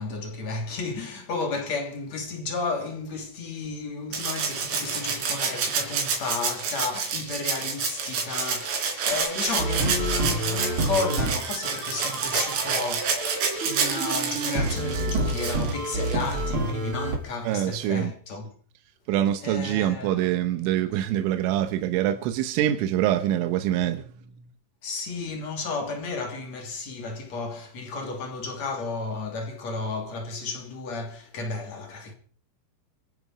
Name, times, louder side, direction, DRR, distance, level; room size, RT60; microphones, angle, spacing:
voice 1, 0.0-18.5 19.4-20.2 24.8-32.1, left 4 dB, 40° left, 3.6 m, -33 dB
Rattle (instrument), 4.1-16.4 17.8-17.9, right 5 dB, 65° right, 5.7 m, -29 dB
sound 1, 9.5-17.2, right 2 dB, 50° right, 1.6 m, -29 dB
voice 2, 17.4-18.1 19.1-24.2, right 12 dB, 90° right, 3.4 m, -25 dB
28.0 x 9.6 x 4.8 m
omnidirectional pair, 5.5 m